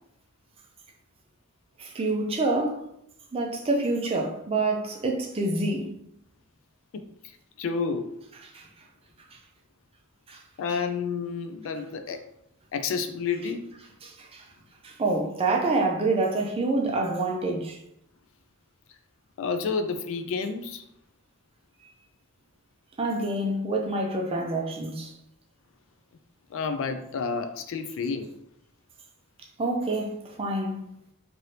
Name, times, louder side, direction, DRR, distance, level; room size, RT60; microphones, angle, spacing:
voice 1, 1.8-2.8 3.3-6.0 8.4-8.7 9.3-9.4 10.3-10.4 14.0-14.4 14.8-17.8 23.0-25.1 29.6-30.8, right 2 dB, 25° right, 0.5 m, -27 dB
voice 2, 7.6-8.1 10.6-12.2 12.7-13.7 19.4-20.8 26.5-28.3, left 5 dB, 65° left, 0.3 m, -30 dB
3.2 x 2.6 x 2.8 m
head